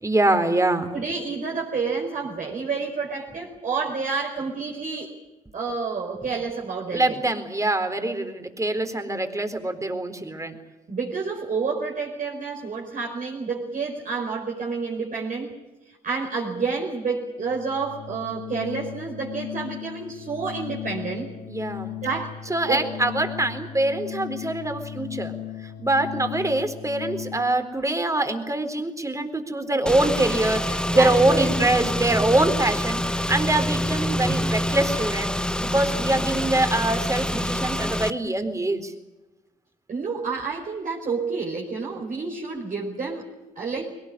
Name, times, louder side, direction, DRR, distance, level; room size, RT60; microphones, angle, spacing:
voice 1, 0.0-0.9 6.9-10.6 21.5-21.9 22.5-25.3 25.8-35.3 35.6-38.9, right 2 dB, 20° right, 8 dB, 4.1 m, -24 dB
voice 2, 0.9-5.1 5.5-7.2 10.9-15.6 15.9-21.3 22.0-22.4 22.7-22.8 30.9-31.9 34.3-34.4 39.9-43.9, right 4 dB, 50° right, -3 dB, 5.0 m, -29 dB
Organ, 17.3-27.6, left 11 dB, 80° left, 3.0 m, -37 dB
Car / Engine, 29.9-38.1, left 1 dB, 5° left, 1.1 m, -26 dB
22.0 x 18.5 x 10.0 m, 1.1 s
hypercardioid pair, 50°, 17 cm